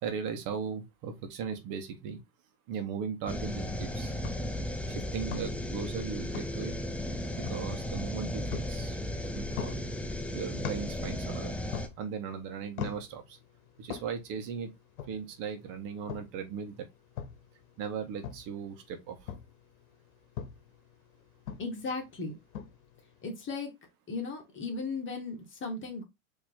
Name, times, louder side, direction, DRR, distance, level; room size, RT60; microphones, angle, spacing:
voice 1, 0.0-2.2 2.7-4.1 4.9-6.7 7.3-9.0 9.3-9.8 10.3-11.5 12.0-13.4 13.8-14.7 15.1-16.9 17.8-19.2, right 6 dB, 50° right, 1.2 m, -37 dB
sound 1, 3.3-23.3, left 8 dB, 75° left, 1.0 m, -46 dB
sound 2, 3.3-11.9, left 1 dB, 5° left, 0.4 m, -35 dB
voice 2, 21.6-22.3 23.2-23.7 24.1-26.0, left 3 dB, 25° left, 1.8 m, -36 dB
4.3 x 3.0 x 3.8 m
hypercardioid pair, 105°, 42 cm